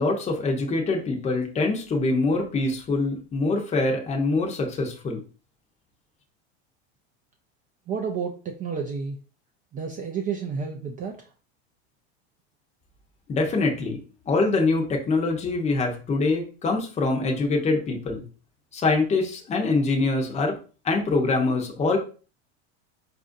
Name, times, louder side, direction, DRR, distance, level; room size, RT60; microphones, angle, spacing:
voice 1, 0.0-5.2 13.3-18.2 18.7-20.6 20.8-22.0, left 3 dB, 20° left, 2 dB, 0.7 m, -24 dB
voice 2, 7.9-9.2 9.7-11.2, right 6 dB, 25° right, 1 dB, 0.4 m, -30 dB
4.2 x 2.6 x 2.5 m, 0.37 s
supercardioid pair, 115°, 33 cm